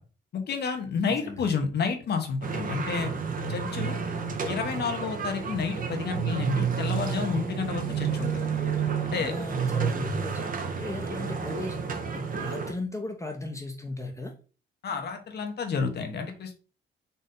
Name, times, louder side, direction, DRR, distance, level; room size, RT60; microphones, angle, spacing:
voice 1, 0.3-3.1 3.5-4.0 4.4-8.4 9.0-9.3 14.8-16.6, left 5 dB, 55° left, 5 dB, 0.9 m, -30 dB
voice 2, 1.1-1.5 9.1-10.4 10.8-11.8 12.1-14.3, left 2 dB, 15° left, 2 dB, 0.7 m, -36 dB
sound 1, 2.4-12.7, right 6 dB, 45° right, 0.8 m, -30 dB
4.0 x 2.7 x 3.6 m, 0.36 s
cardioid pair, 90°, 20 cm